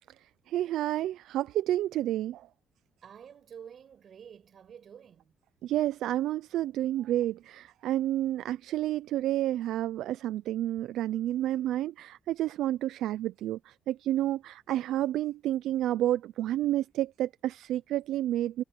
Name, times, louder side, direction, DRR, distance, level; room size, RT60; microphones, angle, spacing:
voice 1, 0.5-2.4 5.6-18.6, right 13 dB, 85° right, 0.4 m, -30 dB
voice 2, 3.0-5.3, right 8 dB, 55° right, 5.5 m, -49 dB
cardioid pair, 90°, 0 cm